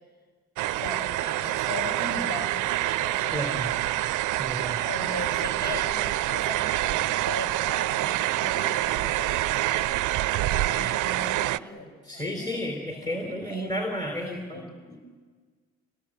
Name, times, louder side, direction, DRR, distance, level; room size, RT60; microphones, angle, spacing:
sound 1, 0.6-11.6, right 16 dB, 85° right, 0.6 m, -26 dB
voice 1, 0.7-3.8 4.8-9.8 10.4-13.7 14.2-14.8, left 2 dB, 30° left, 2 dB, 7.2 m, -39 dB
voice 2, 3.3-3.7 4.4-4.8 12.0-15.1, equal, 15° left, 3 dB, 3.7 m, -32 dB
28.0 x 18.0 x 8.8 m, 1.5 s
cardioid pair, 90°, 30 cm